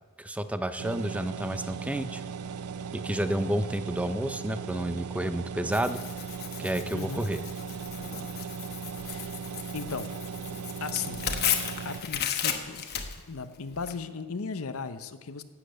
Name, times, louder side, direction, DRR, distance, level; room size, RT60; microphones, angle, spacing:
voice 1, 0.2-2.2 2.9-6.0 6.6-7.4, right 1 dB, 5° right, 10 dB, 0.5 m, -30 dB
sound 1, 0.8-12.0, right 6 dB, 80° right, 0.5 m, -38 dB
Tearing, 5.7-13.9, left 8 dB, 45° left, 1.1 m, -35 dB
voice 2, 6.9-7.3 9.0-9.4 9.7-10.1 10.8-11.3 11.8-12.9 13.3-15.4, left 5 dB, 65° left, 10 dB, 0.7 m, -36 dB
11.5 x 8.3 x 7.8 m, 1.3 s
head